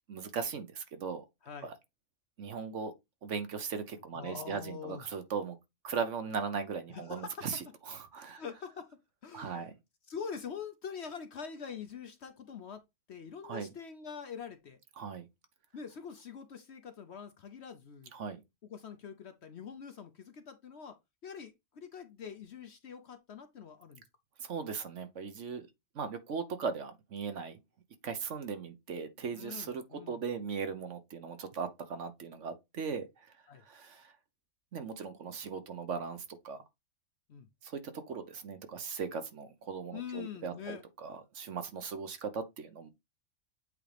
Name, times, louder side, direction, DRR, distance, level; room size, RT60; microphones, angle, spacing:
voice 1, 0.1-1.2 1.6-1.7 2.4-2.9 3.2-5.6 5.8-8.4 9.3-9.7 13.4-13.7 15.0-15.3 18.1-18.4 24.4-25.7 25.9-27.6 28.0-33.3 33.6-34.1 34.7-36.6 37.6-42.9, right 6 dB, 55° right, 1.2 m, -38 dB
voice 2, 4.1-5.0 6.9-7.5 8.4-9.7 10.1-14.8 15.7-18.1 18.6-21.0 21.2-24.0 29.3-30.2 33.5-33.6 37.3-37.5 39.9-40.8, left 7 dB, 55° left, 0.9 m, -44 dB
8.2 x 3.8 x 3.4 m
omnidirectional pair, 1.6 m